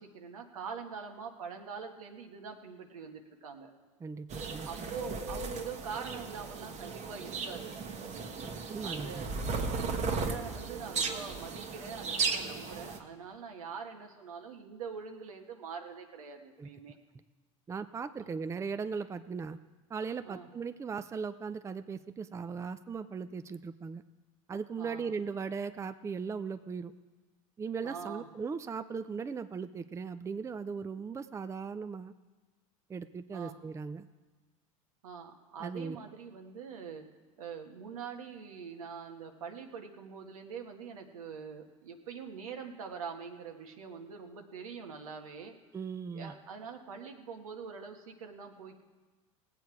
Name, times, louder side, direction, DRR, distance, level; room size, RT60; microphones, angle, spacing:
voice 1, 0.0-3.7 4.6-7.8 8.8-9.3 9.7-16.9 18.2-18.3 20.2-20.5 24.8-25.1 27.8-28.3 33.3-33.6 35.0-37.1 37.4-45.5 46.1-48.8, right 6 dB, 85° right, 4 dB, 1.5 m, -44 dB
voice 2, 4.0-4.7 8.7-9.5 16.6-16.7 17.7-19.6 19.9-24.0 24.5-26.9 27.6-32.1 32.9-34.1 35.6-36.0 45.7-46.3, right 5 dB, 15° right, 11 dB, 0.5 m, -38 dB
sound 1, 4.3-13.0, right 4 dB, 40° right, 1.4 m, -36 dB
18.5 x 8.4 x 4.7 m, 1.3 s
hypercardioid pair, 95°, 17 cm